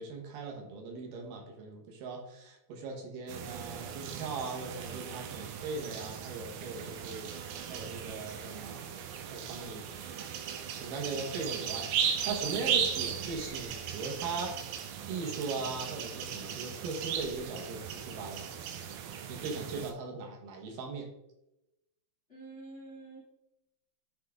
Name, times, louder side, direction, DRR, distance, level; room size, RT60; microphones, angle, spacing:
voice 1, 0.0-7.3 7.7-8.8 9.3-9.8 10.7-14.6 15.1-18.5 19.3-21.1, right 3 dB, 70° right, 1 dB, 2.7 m, -39 dB
sound 1, 3.3-19.9, right 8 dB, 85° right, 2.6 m, -37 dB
voice 2, 22.3-23.2, right 3 dB, 65° left, -6 dB, 0.6 m, -47 dB
9.6 x 3.8 x 3.6 m, 0.88 s
omnidirectional pair, 4.3 m